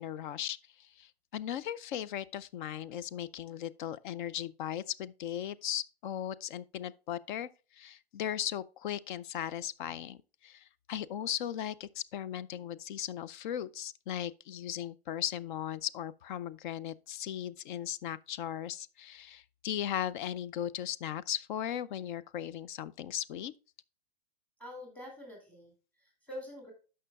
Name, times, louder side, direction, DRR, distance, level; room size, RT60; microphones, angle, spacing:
voice 1, 0.0-23.5, left 10 dB, 55° left, 0.5 m, -37 dB
voice 2, 24.6-26.7, left 1 dB, 5° left, 2.6 m, -46 dB
13.0 x 5.6 x 2.3 m
hypercardioid pair, 135°, 31 cm